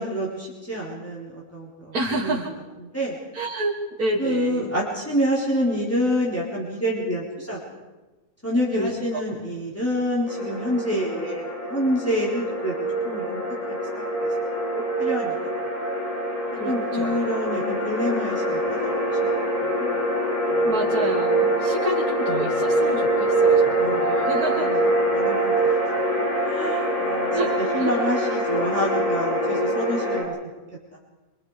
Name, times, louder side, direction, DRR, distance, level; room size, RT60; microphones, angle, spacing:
voice 1, 0.0-2.4 2.9-3.2 4.2-7.6 8.4-12.7 13.0-13.4 13.7-14.3 14.7-15.3 16.6-19.3 19.6-20.0 23.8-24.2 24.5-25.5 26.4-27.3 27.7-30.3 30.9-31.0, equal, 10° left, -5 dB, 4.1 m, -27 dB
voice 2, 1.9-2.5 3.3-4.7 8.7-9.2 16.6-17.2 20.6-24.8 27.3-28.0, right 2 dB, 85° right, -1 dB, 2.4 m, -29 dB
sound 1, 10.3-30.2, right 1 dB, 60° left, 5.7 m, -24 dB
27.0 x 24.0 x 5.0 m, 1.1 s
omnidirectional pair, 1.5 m